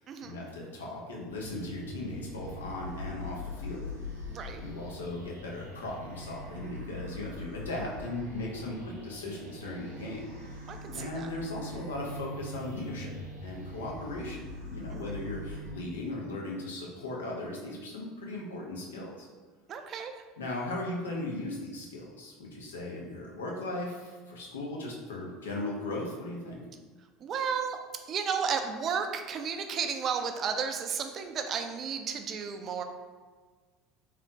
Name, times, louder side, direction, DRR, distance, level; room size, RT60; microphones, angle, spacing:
voice 1, 0.2-3.8 4.6-10.2 10.9-13.1 13.4-19.3 20.4-26.6, left 2 dB, 70° left, -2 dB, 0.6 m, -37 dB
sound 1, 1.3-15.7, left 1 dB, 85° right, 0.7 m, -42 dB
voice 2, 4.3-4.6 10.7-11.3 14.9-15.0 19.7-20.1 27.2-27.8 28.1-32.8, right 6 dB, 40° right, 6 dB, 0.3 m, -33 dB
3.3 x 2.9 x 2.4 m, 1.5 s
figure-of-eight pair, 70°, 0 cm